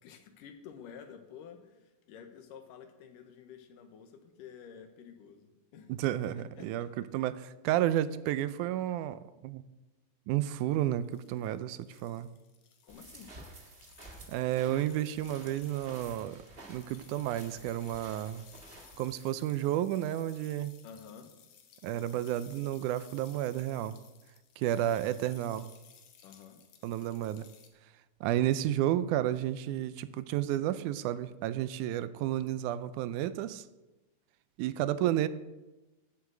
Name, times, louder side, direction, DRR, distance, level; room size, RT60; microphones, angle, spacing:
voice 1, 0.0-6.9 12.8-13.3 20.8-21.3 24.7-25.0 26.2-26.6, left 7 dB, 85° left, 2.8 m, -51 dB
voice 2, 5.9-9.6 10.3-12.3 14.3-16.4 16.7-18.4 19.0-20.7 21.8-24.0 24.6-25.7 26.8-27.5 28.2-33.6 34.6-35.3, right 12 dB, 80° right, 2.0 m, -31 dB
sound 1, 10.9-27.7, left 8 dB, 70° left, 2.5 m, -58 dB
sound 2, 12.9-19.0, right 2 dB, 25° right, 1.3 m, -52 dB
10.5 x 8.0 x 7.6 m
omnidirectional pair, 3.7 m